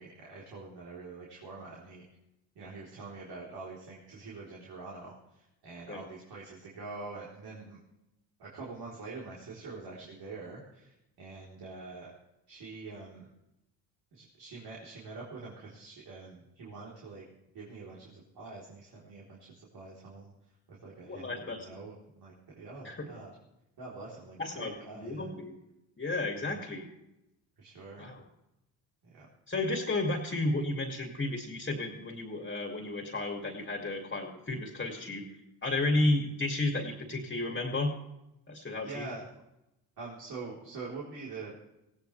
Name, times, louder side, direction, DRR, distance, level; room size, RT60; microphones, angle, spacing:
voice 1, 0.0-2.0 2.6-7.8 8.4-12.1 12.5-13.3 14.1-17.2 17.5-23.3 23.8-25.3 26.3-26.6 27.6-28.1 29.0-29.3 36.0-36.1 38.8-39.3 40.0-41.5, right 3 dB, 60° right, -4 dB, 4.0 m, -45 dB
voice 2, 21.0-21.7 22.8-23.0 24.4-25.6 26.0-26.9 28.0-28.2 29.5-35.3 35.6-37.9 38.5-39.1, left 2 dB, 25° left, 2 dB, 2.5 m, -32 dB
17.5 x 16.5 x 3.4 m, 0.90 s
supercardioid pair, 65°, 42 cm